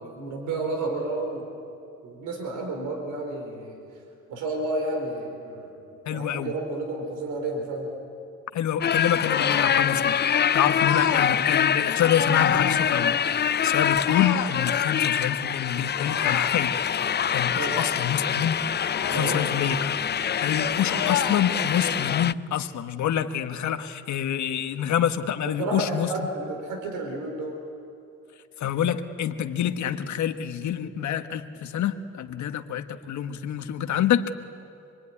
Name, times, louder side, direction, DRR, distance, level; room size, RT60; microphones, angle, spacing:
voice 1, 0.0-1.5 2.0-3.8 4.3-7.9 10.7-10.8 17.6-17.8 19.1-19.4 25.6-27.6, right 2 dB, 90° right, 3 dB, 4.4 m, -31 dB
voice 2, 6.0-6.5 8.5-10.2 10.5-16.8 17.3-18.6 19.1-20.0 20.4-26.1 28.6-34.2, left 9 dB, 70° left, 7 dB, 1.5 m, -27 dB
sound 1, 8.8-22.3, left 8 dB, 35° left, 0.5 m, -25 dB
sound 2, 9.2-9.8 10.8-11.3 12.3-12.9 14.0-14.6 16.0-16.6 18.9-19.5 20.9-21.5, left 10 dB, 85° left, 1.9 m, -30 dB
25.0 x 23.0 x 9.9 m, 2.8 s
cardioid pair, 90°, 30 cm